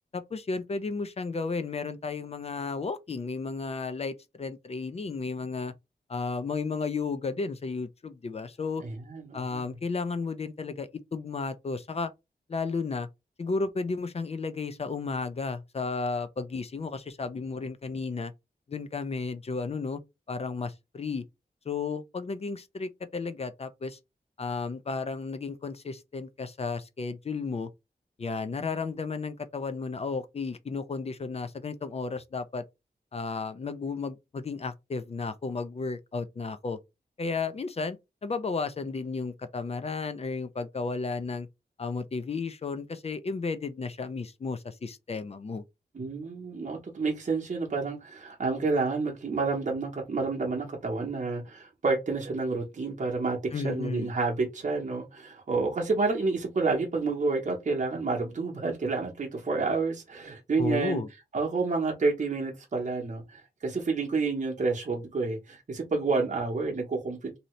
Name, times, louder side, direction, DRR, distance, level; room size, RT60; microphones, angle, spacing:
voice 1, 0.1-5.7 6.1-8.8 9.3-12.1 12.5-13.1 13.4-18.3 18.7-20.0 20.3-21.2 21.7-24.0 24.4-27.7 28.2-32.6 33.1-36.8 37.2-38.0 38.2-41.5 41.8-45.6 53.5-54.1 60.6-61.1, left 4 dB, 40° left, 0.4 m, -33 dB
voice 2, 8.8-9.7 45.9-61.0 61.3-67.4, right 3 dB, 45° right, 0.8 m, -29 dB
2.7 x 2.6 x 3.1 m
wide cardioid pair, 105°, 17 cm